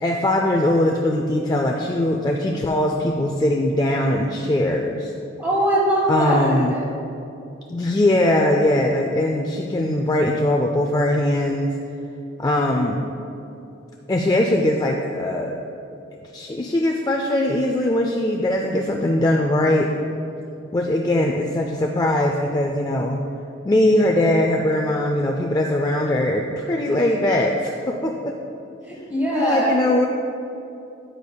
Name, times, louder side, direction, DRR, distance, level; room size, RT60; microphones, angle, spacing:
voice 1, 0.0-5.1 6.1-6.7 7.7-11.7 12.4-13.0 14.1-15.6 16.3-19.9 20.7-23.2 23.6-28.3 29.3-30.1, left 1 dB, 20° left, 1 dB, 0.3 m, -21 dB
voice 2, 5.4-6.8 28.9-29.8, right 1 dB, 10° right, -5 dB, 1.6 m, -21 dB
10.0 x 8.2 x 2.3 m, 2.7 s
head